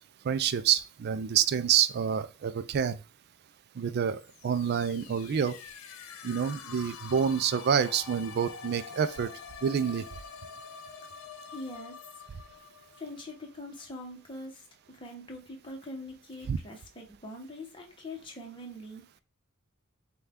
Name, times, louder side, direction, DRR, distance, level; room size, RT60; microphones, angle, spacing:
voice 1, 0.2-3.0 3.8-5.6 6.2-9.3 9.6-10.1 16.5-16.6, right 8 dB, 50° right, 0.3 m, -27 dB
sound 1, 4.2-13.9, left 6 dB, 65° left, 0.4 m, -46 dB
voice 2, 11.5-12.0 13.0-19.2, left 1 dB, 25° left, 0.9 m, -43 dB
5.5 x 2.3 x 3.5 m
head